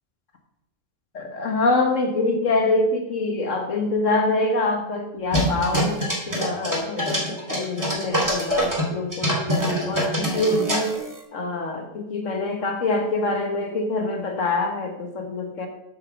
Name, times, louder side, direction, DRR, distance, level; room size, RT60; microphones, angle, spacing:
voice 1, 1.1-9.5 9.8-10.9 11.3-15.7, left 2 dB, 75° left, 4 dB, 1.8 m, -25 dB
sound 1, 5.3-8.8 9.1-11.2, equal, 15° right, 2.0 m, -24 dB
8.4 x 6.4 x 6.4 m, 0.83 s
omnidirectional pair, 1.3 m